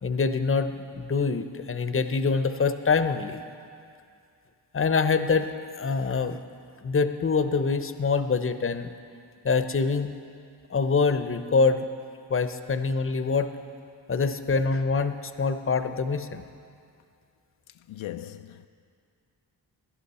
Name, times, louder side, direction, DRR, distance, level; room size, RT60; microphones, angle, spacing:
voice 1, 0.0-3.4 4.7-5.5 5.8-6.4 6.8-8.9 9.4-10.1 10.7-11.9 12.3-13.5 14.1-16.4, left 4 dB, 25° left, 0.8 m, -25 dB
voice 2, 17.9-18.7, left 12 dB, 80° left, 0.5 m, -38 dB
16.5 x 11.5 x 4.3 m
cardioid pair, 45°, 47 cm